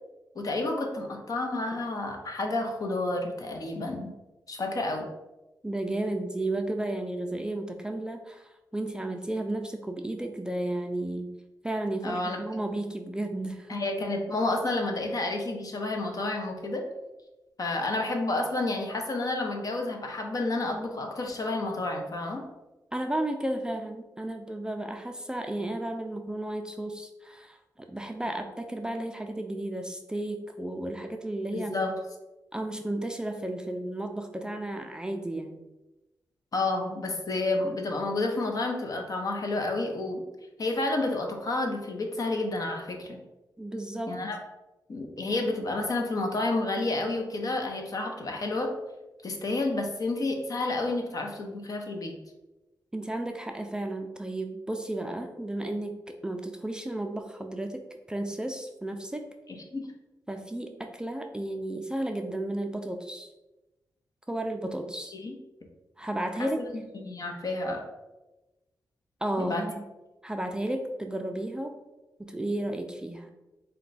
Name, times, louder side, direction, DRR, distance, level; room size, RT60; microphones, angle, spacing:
voice 1, 0.4-4.1 4.5-5.1 12.0-12.4 13.7-16.8 17.6-22.4 31.5-31.9 36.5-40.2 40.6-43.2 44.1-44.4 44.9-48.7 49.2-52.1 59.7-59.9 65.2-65.3 66.4-66.5 66.9-67.8 69.4-69.6, left 2 dB, 55° left, 3 dB, 0.7 m, -30 dB
voice 2, 5.6-11.3 11.6-13.8 22.9-31.7 32.5-35.6 43.6-44.2 52.9-59.3 60.3-63.3 64.3-65.1 66.0-66.6 69.2-69.8 70.2-71.7 72.2-73.3, right 1 dB, 10° right, 4 dB, 0.4 m, -33 dB
4.3 x 2.2 x 4.0 m, 1.0 s
cardioid pair, 85°, 8 cm